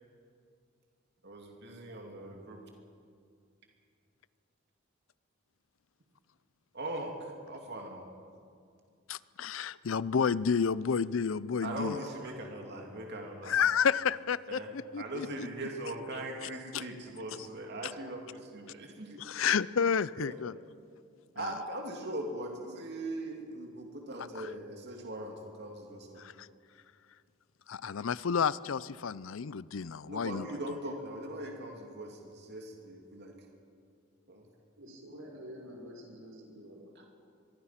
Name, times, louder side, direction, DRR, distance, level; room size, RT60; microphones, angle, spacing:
voice 1, 1.2-2.6 6.7-8.1 11.6-13.6 14.5-14.7 15.0-19.2 20.2-20.4 21.3-26.2 30.1-33.3 34.3-34.4 36.9-37.1, right 1 dB, 55° right, 1 dB, 2.6 m, -40 dB
voice 2, 9.1-12.0 13.5-15.5 16.7-16.8 19.2-20.5 24.4-24.5 26.2-26.5 27.7-30.5, left 6 dB, 75° left, 19 dB, 0.5 m, -30 dB
voice 3, 34.8-36.9, equal, 80° right, 0 dB, 6.0 m, -48 dB
24.0 x 22.5 x 5.9 m, 2.3 s
head